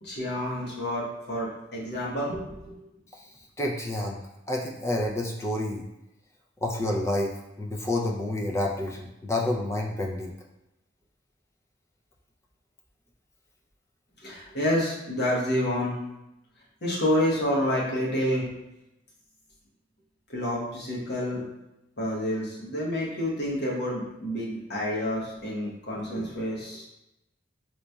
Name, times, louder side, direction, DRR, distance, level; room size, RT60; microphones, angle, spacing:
voice 1, 0.0-2.7 14.2-16.0 16.8-18.5 20.3-21.4 22.0-26.8, left 1 dB, 55° left, -4 dB, 1.0 m, -28 dB
voice 2, 3.6-4.2 4.5-5.9 6.6-7.3 7.6-10.3, left 1 dB, 15° left, 0 dB, 0.3 m, -29 dB
3.9 x 3.1 x 2.2 m, 0.91 s
head